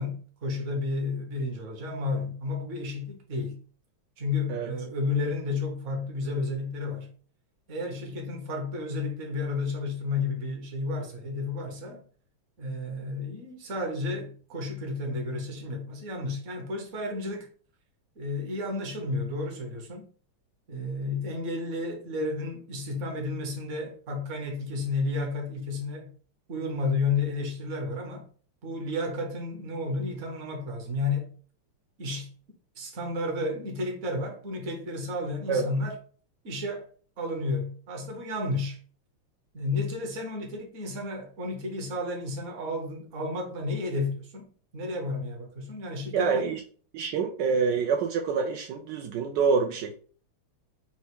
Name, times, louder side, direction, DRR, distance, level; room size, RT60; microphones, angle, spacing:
voice 1, 0.0-3.6 4.2-7.1 7.7-12.0 12.6-17.5 18.2-20.1 20.7-26.1 26.5-28.3 28.6-31.3 32.0-32.3 32.8-36.0 36.4-36.9 37.2-38.8 39.5-46.5, left 3 dB, 50° right, 1.0 m, -32 dB
voice 2, 46.1-46.6 46.9-49.9, right 5 dB, 85° right, 0.9 m, -26 dB
4.4 x 2.2 x 4.3 m
omnidirectional pair, 2.4 m